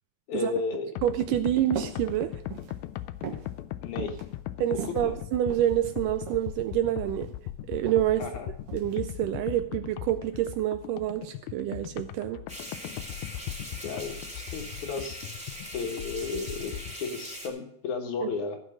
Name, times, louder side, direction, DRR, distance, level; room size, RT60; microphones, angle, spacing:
voice 1, 0.3-0.9 3.8-4.2 4.8-5.2 8.2-8.5 13.8-15.2 15.7-18.6, left 4 dB, 60° left, 4 dB, 2.5 m, -33 dB
sound 1, 1.0-17.0, left 14 dB, 90° left, 2.5 m, -39 dB
voice 2, 1.0-2.4 4.6-7.3 7.7-8.3 8.7-12.4 18.2-18.3, right 12 dB, 80° right, 10 dB, 2.0 m, -27 dB
sound 2, 1.7-2.0 2.4-2.8 3.2-3.5 4.0-4.2 4.7-5.7 6.3-6.5 6.8-7.3 7.9-8.1 8.7-8.9, right 7 dB, 55° right, 1.8 m, -37 dB
sound 3, 12.5-17.5, equal, ahead, 1.8 m, -41 dB
16.0 x 6.0 x 6.3 m, 0.73 s
omnidirectional pair, 4.2 m